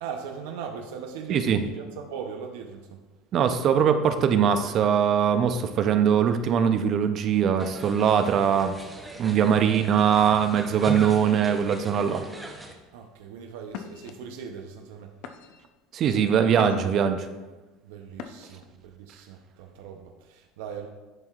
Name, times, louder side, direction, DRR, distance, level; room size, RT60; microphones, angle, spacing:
voice 1, 0.0-3.0 12.9-15.1 17.8-20.9, right 6 dB, 90° right, 3 dB, 0.6 m, -39 dB
voice 2, 3.3-8.7 9.2-12.2 15.9-17.3, right 8 dB, 40° right, 8 dB, 0.5 m, -22 dB
sound 1, 7.6-12.7, right 2 dB, 5° right, 0.7 m, -38 dB
sound 2, 12.9-13.1 13.7-14.1 14.8-14.9 15.2-15.7 16.2-17.0 18.1-18.7, left 8 dB, 60° left, 0.5 m, -41 dB
10.5 x 4.6 x 2.4 m, 1.2 s
cardioid pair, 140°, 0 cm